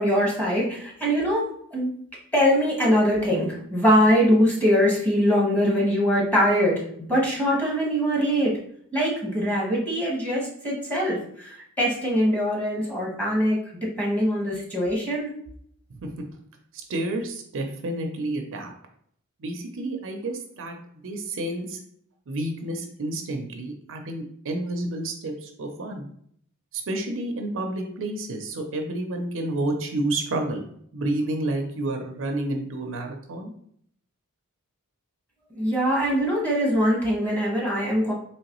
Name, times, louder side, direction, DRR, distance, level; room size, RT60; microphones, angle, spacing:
voice 1, 0.0-1.9 2.3-6.8 7.1-8.5 8.9-13.6 14.0-15.3 35.5-38.1, equal, 5° left, -5 dB, 1.2 m, -22 dB
voice 2, 15.9-16.2 16.9-18.7 19.4-20.7 21.0-21.8 22.3-26.1 26.7-30.6 30.9-33.5, right 2 dB, 60° right, 4 dB, 0.5 m, -30 dB
3.9 x 3.0 x 3.0 m, 0.65 s
head